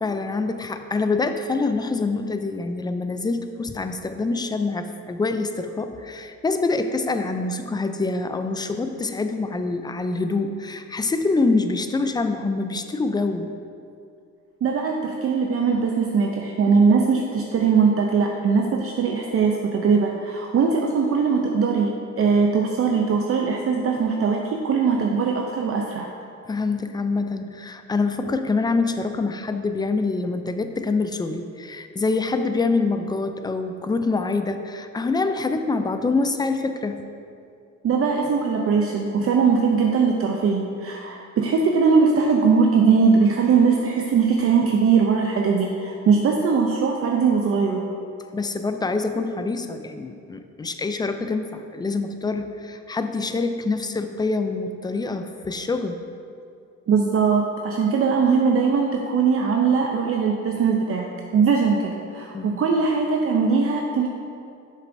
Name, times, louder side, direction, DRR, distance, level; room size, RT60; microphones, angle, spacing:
voice 1, 0.0-13.5 26.5-37.0 48.3-56.0 62.3-62.6, left 3 dB, 15° left, 8 dB, 0.4 m, -25 dB
voice 2, 14.6-26.1 37.8-47.8 56.9-64.1, right 5 dB, 50° right, 1 dB, 0.6 m, -20 dB
7.4 x 6.5 x 2.6 m, 2.5 s
cardioid pair, 90°, 30 cm